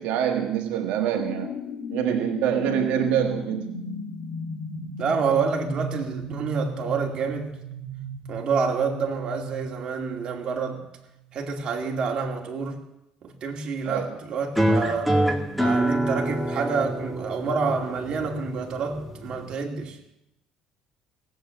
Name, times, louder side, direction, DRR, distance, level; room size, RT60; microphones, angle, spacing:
voice 1, 0.0-1.6 1.9-3.8 13.8-14.1, right 9 dB, 80° right, 1.5 m, -25 dB
sound 1, 1.1-11.5, equal, 70° left, 3.0 m, -36 dB
voice 2, 5.0-7.5 8.3-10.9 11.3-12.8 13.2-15.2 15.5-20.0, right 5 dB, 45° right, 2.5 m, -28 dB
sound 2, 14.5-19.5, right 1 dB, ahead, 1.8 m, -26 dB
17.0 x 8.1 x 9.0 m
cardioid pair, 135°, 2 cm